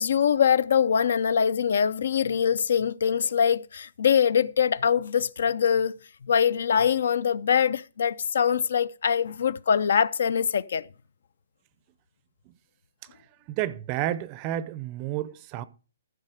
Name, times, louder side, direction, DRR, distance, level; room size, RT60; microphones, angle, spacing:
voice 1, 0.0-6.0 6.3-10.9, left 7 dB, 60° left, 0.5 m, -23 dB
voice 2, 13.5-15.6, right 13 dB, 20° right, 0.5 m, -30 dB
14.5 x 6.5 x 4.9 m
hypercardioid pair, 170°, 0 cm